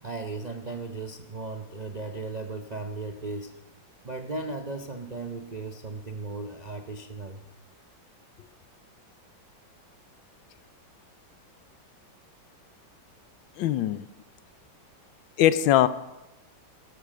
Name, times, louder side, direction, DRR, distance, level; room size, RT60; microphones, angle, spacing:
voice 1, 0.0-3.5 4.0-7.4, right 3 dB, 50° right, 5 dB, 0.5 m, -36 dB
voice 2, 13.6-14.0 15.4-15.9, left 12 dB, 85° left, 15 dB, 1.4 m, -21 dB
13.0 x 11.5 x 6.2 m, 0.97 s
omnidirectional pair, 2.1 m